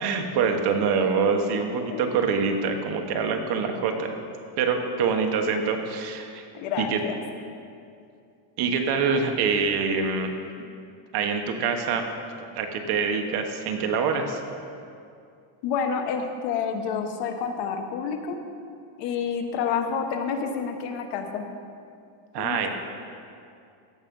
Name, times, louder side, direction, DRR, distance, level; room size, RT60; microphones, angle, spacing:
voice 1, 0.0-4.1 4.6-6.4 6.8-7.0 8.6-10.3 11.1-12.1 12.6-14.4 22.3-22.7, right 5 dB, 60° right, 4 dB, 1.2 m, -25 dB
voice 2, 6.5-7.2 15.6-18.4 19.0-21.4 22.4-22.7, left 6 dB, 75° left, 5 dB, 1.2 m, -29 dB
15.0 x 6.2 x 5.4 m, 2.5 s
cardioid pair, 165°, 44 cm